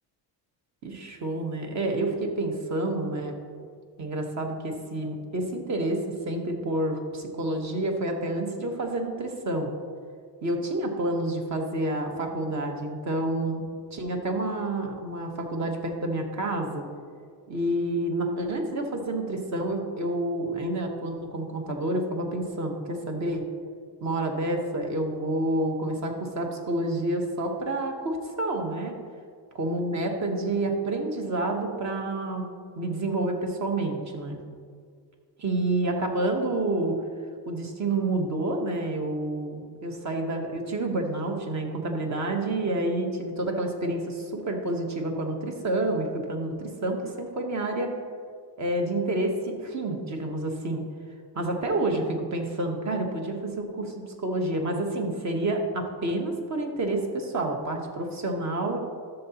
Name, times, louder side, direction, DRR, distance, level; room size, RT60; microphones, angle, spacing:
voice 1, 0.8-3.4 4.0-9.7 10.4-13.6 13.9-16.8 17.5-23.4 24.0-28.9 29.6-32.5 32.7-34.4 35.4-37.0 37.5-47.9 48.6-50.8 51.3-58.8, right 1 dB, 40° right, 3 dB, 1.2 m, -29 dB
12.0 x 6.8 x 2.9 m, 2.1 s
cardioid pair, 130°, 42 cm